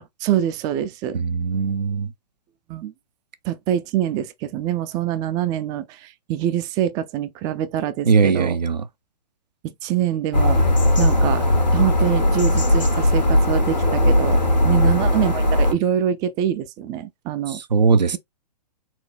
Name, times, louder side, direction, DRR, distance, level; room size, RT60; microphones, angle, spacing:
voice 1, 0.2-1.2 2.7-2.9 3.4-8.6 9.8-10.6 11.0-11.4 11.7-17.6, right 10 dB, 20° right, 0.4 m, -25 dB
voice 2, 1.1-2.1 8.1-8.9 14.6-14.9 17.5-18.2, right 5 dB, 80° right, 0.7 m, -20 dB
sound 1, 10.3-15.7, left 1 dB, 90° left, 1.6 m, -18 dB
4.3 x 2.2 x 4.5 m
figure-of-eight pair, 120°, 21 cm